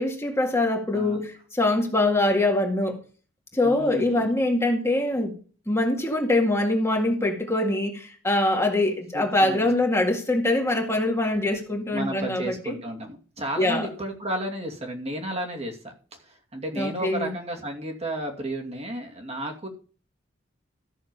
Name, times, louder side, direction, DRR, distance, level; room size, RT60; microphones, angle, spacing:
voice 1, 0.0-3.0 3.5-5.3 5.7-12.8 13.6-13.9 16.8-17.3, left 2 dB, 15° left, 1.9 m, -23 dB
voice 2, 3.6-4.3 9.1-9.7 11.9-15.9 16.3-19.7, right 1 dB, 35° right, 2.5 m, -32 dB
14.0 x 6.5 x 5.4 m
head